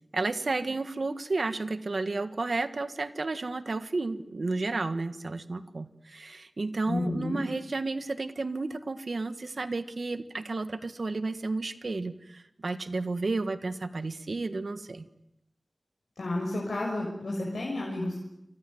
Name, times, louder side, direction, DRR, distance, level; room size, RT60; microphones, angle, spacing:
voice 1, 0.1-15.1, right 3 dB, 70° right, 10 dB, 1.7 m, -32 dB
voice 2, 6.9-7.4 16.2-18.2, left 2 dB, 80° left, -2 dB, 6.1 m, -31 dB
28.5 x 25.5 x 8.1 m, 0.84 s
cardioid pair, 40°, 0 cm